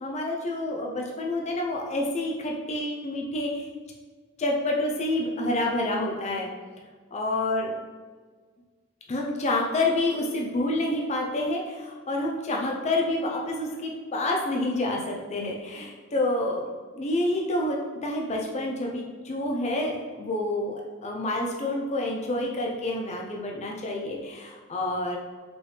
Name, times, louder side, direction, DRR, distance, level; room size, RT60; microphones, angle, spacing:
voice 1, 0.0-3.7 4.4-6.5 7.1-7.8 9.1-16.6 16.9-25.2, left 1 dB, 30° left, 0 dB, 0.5 m, -28 dB
5.1 x 3.2 x 3.3 m, 1.5 s
head